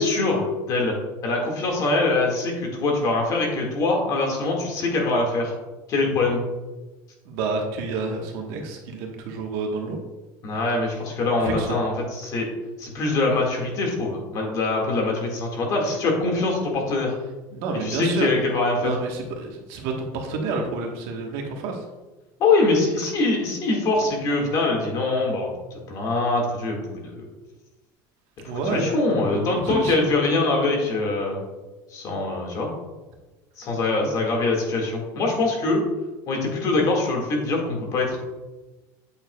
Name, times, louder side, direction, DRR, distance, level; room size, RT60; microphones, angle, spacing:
voice 1, 0.0-5.5 5.9-6.4 10.4-12.5 12.8-17.1 17.7-18.9 22.4-27.3 28.4-31.4 31.9-32.7 33.6-35.8 36.3-38.2, left 3 dB, 45° left, 0 dB, 2.0 m, -23 dB
voice 2, 7.2-10.0 11.4-11.7 17.5-18.3 18.8-21.8 28.4-28.9 29.2-30.1 34.0-34.1, right 3 dB, 70° right, 2 dB, 1.4 m, -29 dB
8.5 x 6.9 x 2.3 m, 1.1 s
cardioid pair, 155°, 9 cm